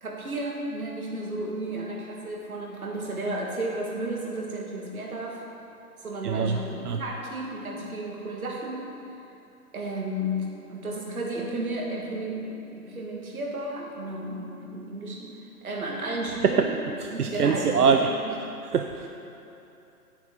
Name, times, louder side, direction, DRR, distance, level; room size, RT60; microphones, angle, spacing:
voice 1, 0.0-5.4 6.0-8.9 9.7-16.7 17.1-18.2, right 1 dB, 70° right, -2 dB, 1.9 m, -33 dB
voice 2, 6.2-6.6 6.8-7.0 16.4-16.7 17.0-18.1 18.7-19.1, right 6 dB, 90° right, 5 dB, 0.5 m, -23 dB
9.2 x 8.4 x 3.8 m, 2.9 s
figure-of-eight pair, 125°, 45 cm